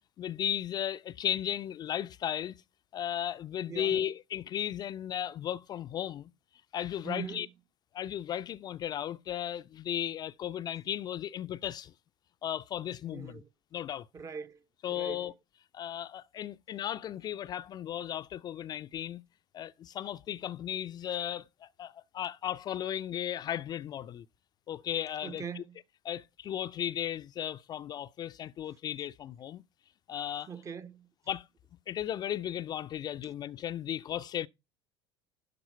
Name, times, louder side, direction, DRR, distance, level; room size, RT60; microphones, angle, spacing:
voice 1, 0.2-2.5 2.9-6.3 6.7-7.5 7.9-11.9 12.4-13.4 13.7-14.1 14.8-15.3 15.7-19.2 19.5-24.3 24.7-25.6 26.0-29.6 30.1-30.5 31.3-31.5 31.9-34.5, left 10 dB, 30° left, 0.4 m, -35 dB
voice 2, 3.7-4.0 7.0-7.5 13.1-13.5 14.1-14.6 14.9-15.3 25.2-25.8 30.5-31.1, right 6 dB, 20° right, 0.6 m, -42 dB
12.0 x 4.2 x 5.4 m
figure-of-eight pair, 70°, 14 cm